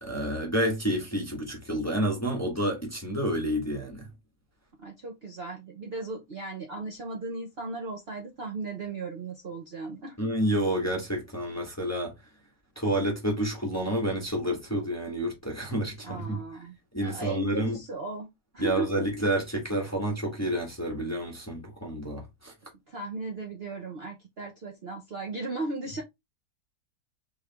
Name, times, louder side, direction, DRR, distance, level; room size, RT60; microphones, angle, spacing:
voice 1, 0.0-4.1 10.2-12.1 12.8-16.4 16.9-17.8 18.6-22.5, right 1 dB, 10° left, 1.0 m, -29 dB
voice 2, 4.8-10.2 16.0-16.7 17.0-19.0 22.9-26.0, right 3 dB, 45° right, 0.8 m, -36 dB
3.6 x 3.2 x 3.3 m
omnidirectional pair, 1.8 m